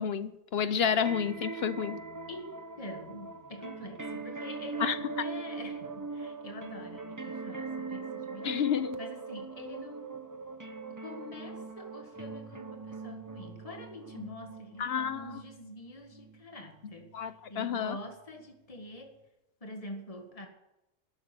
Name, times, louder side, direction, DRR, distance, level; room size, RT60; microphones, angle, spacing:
voice 1, 0.0-2.0 4.8-5.3 8.4-9.0 14.8-15.4 17.1-18.0, left 7 dB, 60° left, 13 dB, 1.0 m, -30 dB
sound 1, 0.6-17.4 18.1-18.2, right 4 dB, 15° right, 0.9 m, -41 dB
voice 2, 2.3-8.6 9.0-10.2 10.9-19.1 19.6-20.5, left 1 dB, 30° left, 4 dB, 2.0 m, -45 dB
13.0 x 9.3 x 9.6 m, 0.92 s
omnidirectional pair, 1.2 m